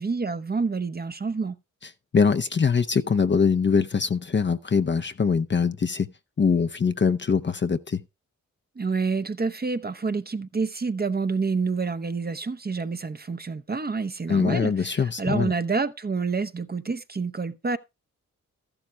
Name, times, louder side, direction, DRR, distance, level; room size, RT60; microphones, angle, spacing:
voice 1, 0.0-1.6 8.8-17.8, right 4 dB, 30° right, 0.7 m, -28 dB
voice 2, 2.1-6.1 6.4-8.0 14.3-15.5, left 5 dB, 35° left, 0.6 m, -23 dB
13.5 x 12.0 x 2.2 m
supercardioid pair, 45°, 34 cm